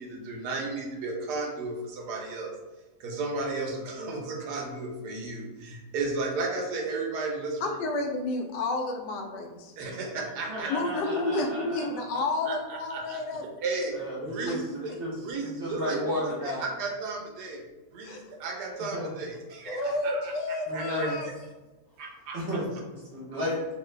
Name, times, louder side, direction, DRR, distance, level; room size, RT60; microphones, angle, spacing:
voice 1, 0.0-2.5 3.0-7.7 9.8-10.7 12.5-13.2 13.6-14.0 14.2-14.9 15.2-17.6 17.9-21.1 22.0-22.6, right 3 dB, 75° right, 0 dB, 1.2 m, -34 dB
voice 2, 7.6-9.7 10.7-13.4 14.5-14.6 18.0-18.2 19.7-21.3, left 2 dB, 85° left, 3 dB, 1.2 m, -30 dB
voice 3, 10.5-11.9 13.9-15.1 15.4-16.7 18.9-19.1 20.7-21.2 22.3-23.6, equal, 45° right, -5 dB, 0.9 m, -33 dB
3.1 x 2.6 x 3.2 m, 1.2 s
omnidirectional pair, 1.8 m